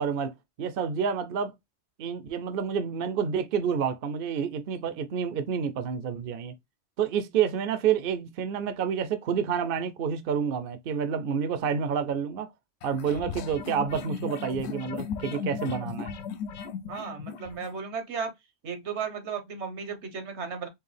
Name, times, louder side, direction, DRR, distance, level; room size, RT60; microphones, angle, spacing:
voice 1, 0.0-1.5 2.0-6.5 7.0-12.5 12.8-16.1, right 7 dB, 60° right, 0.7 m, -29 dB
sound 1, 12.8-17.7, left 6 dB, 75° left, 0.9 m, -37 dB
voice 2, 16.9-18.3 18.6-20.7, right 6 dB, 85° right, 1.3 m, -35 dB
4.6 x 2.7 x 3.2 m
omnidirectional pair, 1.1 m